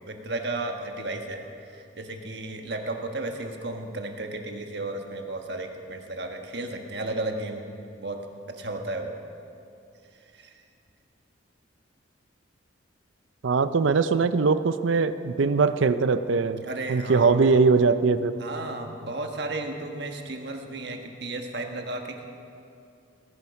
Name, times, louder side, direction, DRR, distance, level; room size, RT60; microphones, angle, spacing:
voice 1, 0.0-1.4 1.7-7.6 8.0-8.2 8.5-9.1 10.3-10.5 16.6-17.3 18.4-22.3, right 2 dB, 60° right, 4 dB, 1.3 m, -33 dB
voice 2, 13.4-16.6 16.9-18.3, right 4 dB, 80° right, 12 dB, 0.5 m, -21 dB
19.0 x 10.5 x 5.8 m, 2.6 s
head